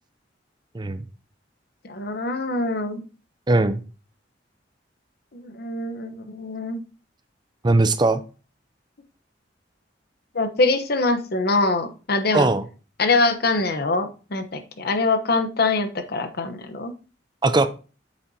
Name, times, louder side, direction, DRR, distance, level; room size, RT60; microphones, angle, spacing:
voice 1, 1.8-3.0 5.3-6.8 10.3-12.5 13.0-16.9, left 3 dB, 55° left, 8 dB, 1.0 m, -24 dB
voice 2, 3.5-3.8 7.6-8.2 12.3-12.6 17.4-17.7, right 2 dB, 25° right, 11 dB, 0.5 m, -19 dB
8.6 x 7.4 x 2.8 m, 0.35 s
head